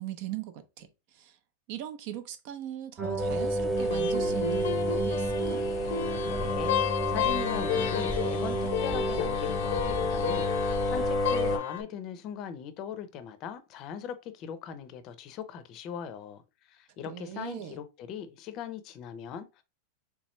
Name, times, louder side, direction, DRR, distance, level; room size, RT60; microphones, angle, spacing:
voice 1, 0.0-1.4 1.7-5.6 17.0-17.8, right 11 dB, 55° right, 0.6 m, -40 dB
sound 1, 3.0-10.1, right 5 dB, 30° right, 0.9 m, -34 dB
sound 2, 3.2-11.6, left 1 dB, 5° right, 1.1 m, -31 dB
sound 3, 3.8-11.8, left 9 dB, 80° left, 0.6 m, -32 dB
voice 2, 6.3-16.4 16.7-19.6, left 8 dB, 40° left, 0.6 m, -40 dB
3.5 x 3.1 x 3.1 m
supercardioid pair, 145°, 0 cm